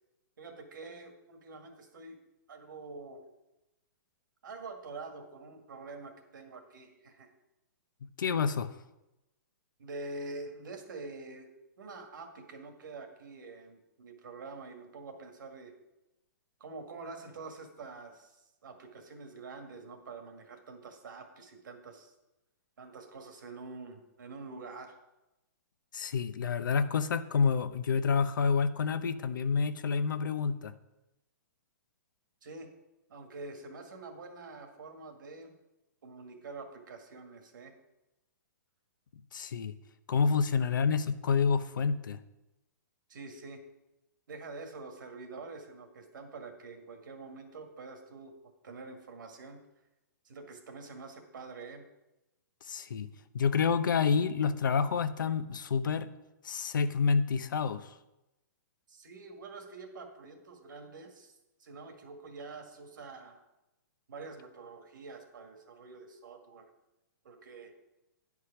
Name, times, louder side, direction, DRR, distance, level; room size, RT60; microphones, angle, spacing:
voice 1, 0.4-2.2 2.5-3.2 4.4-7.3 9.8-11.5 11.8-15.7 16.6-22.1 22.8-25.0 32.4-32.7 33.1-35.5 36.0-37.7 43.1-43.6 44.3-48.3 48.6-49.6 50.2-51.9 58.9-63.4 64.1-66.7 67.2-67.7, right 3 dB, 85° right, 4 dB, 1.8 m, -46 dB
voice 2, 8.2-8.7 25.9-30.7 39.3-39.7 40.1-42.2 52.7-53.1 53.3-56.1 56.4-57.9, left 5 dB, 90° left, 12 dB, 0.7 m, -28 dB
10.0 x 4.8 x 5.8 m, 0.95 s
hypercardioid pair, 165°, 10 cm